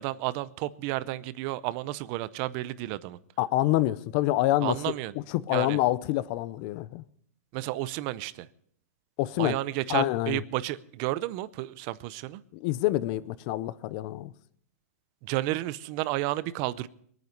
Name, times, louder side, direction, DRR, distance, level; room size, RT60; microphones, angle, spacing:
voice 1, 0.0-3.2 4.6-5.1 5.5-5.8 7.5-8.5 9.4-12.4 15.2-16.9, right 17 dB, 30° right, 0.6 m, -31 dB
voice 2, 3.4-4.8 5.3-7.0 9.2-9.6 9.9-10.4 12.5-14.3, left 16 dB, 35° left, 0.6 m, -27 dB
22.5 x 9.4 x 5.3 m
hypercardioid pair, 165°, 9 cm